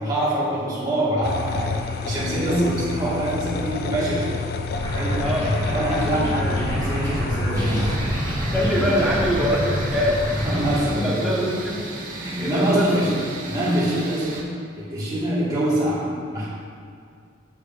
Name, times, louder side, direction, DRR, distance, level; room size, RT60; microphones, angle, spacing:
voice 1, 0.0-4.4 4.9-7.9 8.6-9.0 10.3-11.4 12.1-13.1 13.5-14.5 14.8-16.5, right 1 dB, 20° right, -9 dB, 1.9 m, -25 dB
sound 1, 1.2-8.0, left 5 dB, 50° left, 0.4 m, -29 dB
sound 2, 4.7-10.8, equal, 15° left, 1.8 m, -27 dB
sound 3, 7.5-14.4, right 2 dB, 45° right, 1.0 m, -35 dB
voice 2, 8.5-10.2 10.5-11.8 12.4-13.1, equal, ahead, -6 dB, 1.1 m, -24 dB
11.5 x 6.4 x 2.6 m, 2.3 s
head